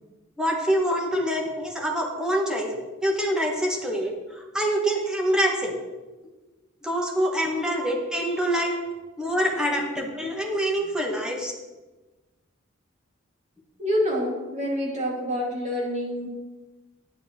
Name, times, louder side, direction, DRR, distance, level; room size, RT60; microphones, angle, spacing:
voice 1, 0.4-2.7 3.0-5.7 6.8-8.8 9.2-11.5, equal, 5° right, -1 dB, 2.0 m, -25 dB
voice 2, 13.8-16.3, equal, 35° right, -3 dB, 3.6 m, -28 dB
10.5 x 9.8 x 4.7 m, 1.2 s
head